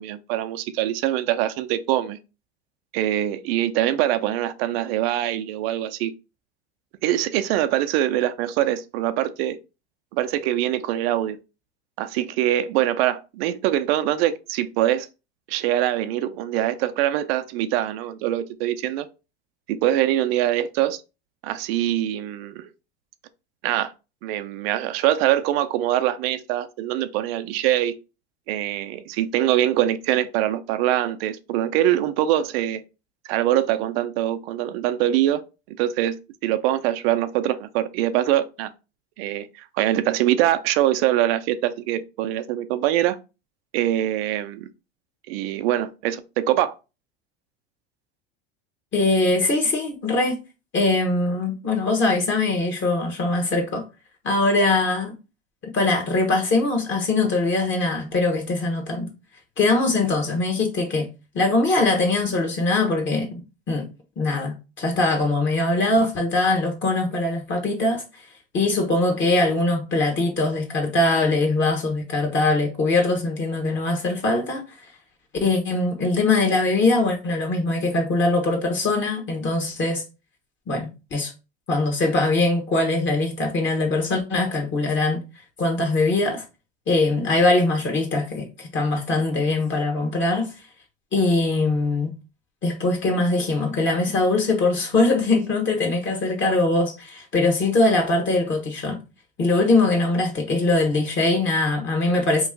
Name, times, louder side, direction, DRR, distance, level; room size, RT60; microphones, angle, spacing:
voice 1, 0.0-2.2 2.9-6.1 7.0-9.6 10.1-11.4 12.0-15.1 15.5-19.1 19.7-21.0 21.4-22.7 23.6-23.9 24.2-27.9 28.5-32.8 33.3-35.4 35.7-36.2 36.4-38.7 39.2-39.5 39.8-43.2 43.7-44.7 45.3-46.7, right 13 dB, 70° right, 0.5 m, -23 dB
voice 2, 48.9-50.4 50.7-53.8 54.2-55.1 55.6-59.1 59.6-61.1 61.3-63.4 63.7-63.8 64.2-68.0 68.5-74.6 75.4-80.0 80.7-81.3 81.7-85.2 85.6-86.4 86.9-90.5 91.1-92.1 92.6-99.0 99.4-102.5, left 2 dB, 40° left, 1.2 m, -22 dB
3.0 x 2.4 x 3.6 m
hypercardioid pair, 95°, 31 cm